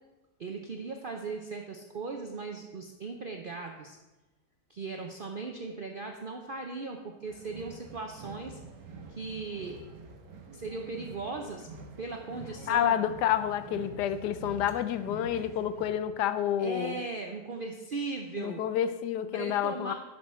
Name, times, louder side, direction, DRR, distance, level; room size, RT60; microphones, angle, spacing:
voice 1, 0.4-4.0 4.7-8.6 9.1-9.8 10.5-11.7 12.0-13.0 16.6-18.6 19.3-19.9, right 3 dB, 65° right, 3 dB, 0.5 m, -38 dB
sound 1, 7.2-15.9, right 3 dB, 90° right, 1.6 m, -47 dB
voice 2, 12.7-17.0 18.4-19.9, left 10 dB, 80° left, 13 dB, 1.2 m, -29 dB
10.5 x 5.6 x 4.3 m, 1.1 s
omnidirectional pair, 1.8 m